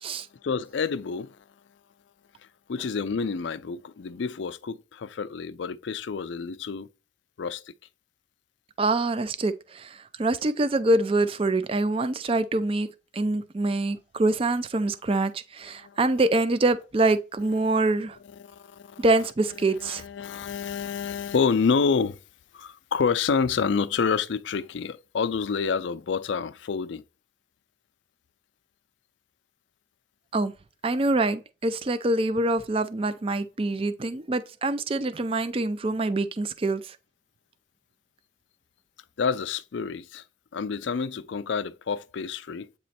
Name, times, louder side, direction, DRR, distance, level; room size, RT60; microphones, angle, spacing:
voice 1, 0.4-1.4 2.7-6.9 7.4-7.7 15.8-16.0 18.3-19.1 19.7-22.2 22.5-27.0 39.2-40.2 40.5-42.7, left 5 dB, 70° left, 0.4 m, -28 dB
voice 2, 8.8-12.9 13.1-18.2 19.0-20.0 30.3-30.5 30.8-37.0, right 2 dB, 30° right, 0.4 m, -25 dB
8.4 x 3.0 x 4.2 m
head